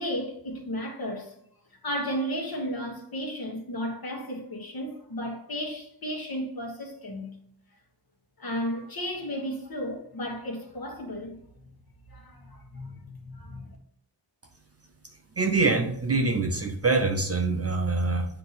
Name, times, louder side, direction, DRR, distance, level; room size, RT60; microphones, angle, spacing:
voice 1, 0.0-1.3 1.8-7.3 8.4-11.4 12.1-12.5 12.7-13.0 13.3-13.6, equal, 50° left, 1.4 m, -33 dB
voice 2, 15.4-18.3, right 3 dB, 35° right, 0.5 m, -24 dB
8.1 x 2.9 x 4.0 m
wide cardioid pair, 155°, 46 cm